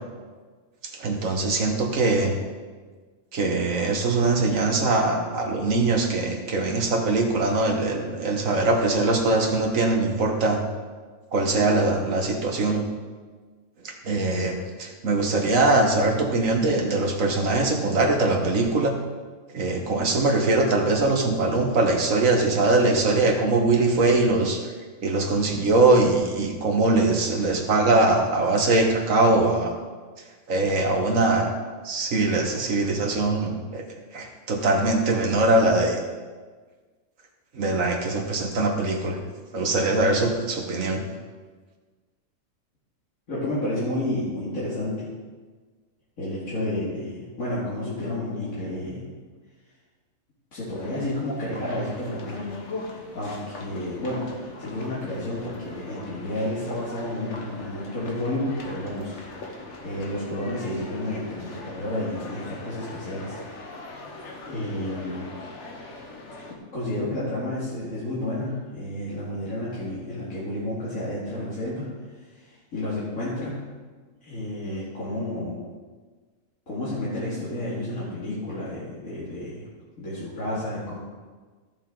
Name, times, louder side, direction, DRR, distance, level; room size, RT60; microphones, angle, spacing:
voice 1, 0.9-2.3 3.3-10.6 11.3-12.8 13.8-18.9 19.5-24.6 25.0-29.7 30.5-31.5 31.8-33.8 34.1-36.0 37.5-39.2 39.5-41.0, right 2 dB, 70° right, 3 dB, 1.7 m, -22 dB
voice 2, 43.3-45.1 46.2-49.0 50.5-52.5 52.8-54.2 54.6-63.4 64.5-65.3 66.7-73.5 74.2-75.6 76.7-79.7 80.0-81.0, left 1 dB, 75° left, -9 dB, 2.6 m, -31 dB
sound 1, 50.7-66.5, left 2 dB, 60° left, 1.5 m, -41 dB
14.5 x 7.0 x 3.9 m, 1.4 s
omnidirectional pair, 1.4 m